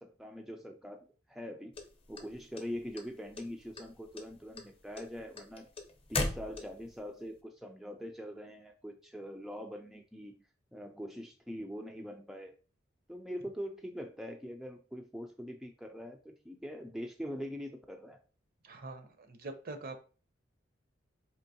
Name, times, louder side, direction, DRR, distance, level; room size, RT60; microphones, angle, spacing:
voice 1, 0.0-1.7 2.1-5.7 6.1-10.3 10.7-12.5 13.1-18.2, equal, ahead, 3 dB, 0.3 m, -43 dB
sound 1, 1.7-3.0 3.3-3.9 4.2-7.0, left 2 dB, 30° left, 0.7 m, -36 dB
voice 2, 18.6-20.0, right 3 dB, 50° right, 7 dB, 0.6 m, -44 dB
4.4 x 2.9 x 2.7 m, 0.37 s
head